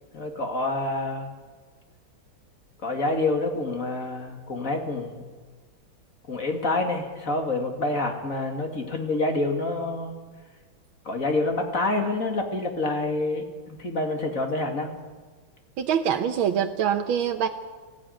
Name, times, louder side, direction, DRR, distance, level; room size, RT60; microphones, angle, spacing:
voice 1, 0.1-1.3 2.8-5.3 6.3-10.2 11.0-14.9, left 2 dB, 40° left, 3 dB, 2.6 m, -27 dB
voice 2, 15.8-17.5, right 8 dB, 80° right, 5 dB, 1.7 m, -24 dB
19.5 x 15.0 x 9.3 m, 1.4 s
omnidirectional pair, 2.2 m